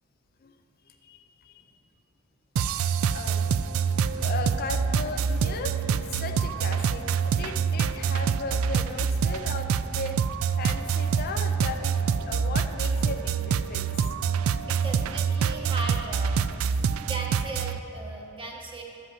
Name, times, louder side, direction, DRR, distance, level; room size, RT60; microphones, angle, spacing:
voice 1, 0.9-1.6 3.1-3.5 4.2-10.2 10.6-11.9 12.2-13.9, left 4 dB, 45° left, 5 dB, 0.4 m, -36 dB
sound 1, 2.6-17.8, right 6 dB, 75° right, 0.3 m, -26 dB
voice 2, 14.7-16.5 17.0-18.8, right 1 dB, 25° right, 0 dB, 1.2 m, -37 dB
12.0 x 5.5 x 7.6 m, 2.8 s
head